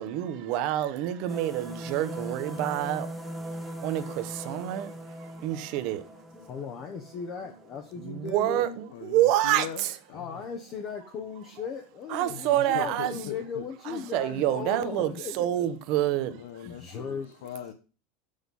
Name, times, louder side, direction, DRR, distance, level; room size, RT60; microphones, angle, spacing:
voice 1, 0.0-3.1 3.8-4.9 5.2-6.0 8.0-9.7 12.1-13.1 13.9-16.4, right 13 dB, 40° right, 0.9 m, -27 dB
sound 1, 1.3-8.3, equal, ahead, 0.8 m, -40 dB
voice 2, 6.4-8.8 10.1-15.7 16.6-17.3, left 6 dB, 30° left, 0.9 m, -37 dB
voice 3, 8.9-10.4 12.3-13.7 14.2-14.4 16.0-17.7, left 10 dB, 80° left, 0.9 m, -41 dB
7.9 x 6.5 x 5.4 m
supercardioid pair, 175°, 0 cm